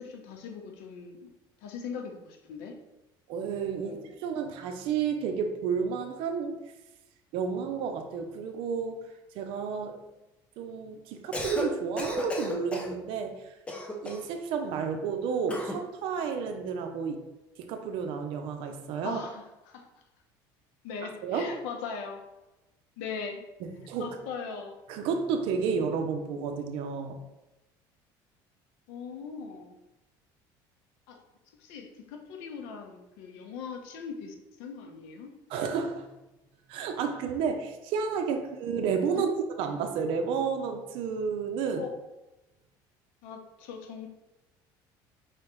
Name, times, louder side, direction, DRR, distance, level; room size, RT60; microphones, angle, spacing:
voice 1, 0.0-1.3 1.6-2.8 3.8-4.0 19.0-19.9 20.8-22.2 23.0-23.4 24.0-24.8 28.9-29.7 31.1-31.2 31.6-35.3 39.1-39.3 41.7-41.9 43.2-44.1, left 5 dB, 85° left, 4 dB, 0.8 m, -40 dB
voice 2, 3.3-6.6 7.3-9.0 9.3-10.0 10.6-13.5 14.0-17.2 17.6-19.2 21.2-21.5 23.6-24.2 24.9-27.2 35.5-36.1 36.7-41.8, right 6 dB, 65° right, 5 dB, 0.6 m, -31 dB
Cough, 11.2-11.7 12.0-13.0 13.7-14.3 15.5-15.8, left 1 dB, 10° left, 0.6 m, -34 dB
4.6 x 3.4 x 3.0 m, 0.99 s
cardioid pair, 145°, 10 cm